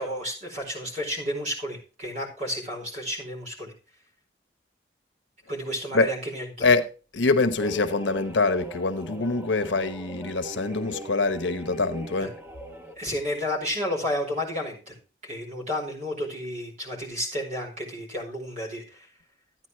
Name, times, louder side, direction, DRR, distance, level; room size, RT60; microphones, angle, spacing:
voice 1, 0.0-3.7 5.5-6.7 12.2-12.3 13.0-15.0 15.2-19.1, equal, 40° right, 4.6 m, -31 dB
voice 2, 7.1-12.3, left 3 dB, 90° left, 1.1 m, -24 dB
sound 1, 7.6-13.0, right 1 dB, 15° right, 1.0 m, -40 dB
13.0 x 9.5 x 3.1 m
head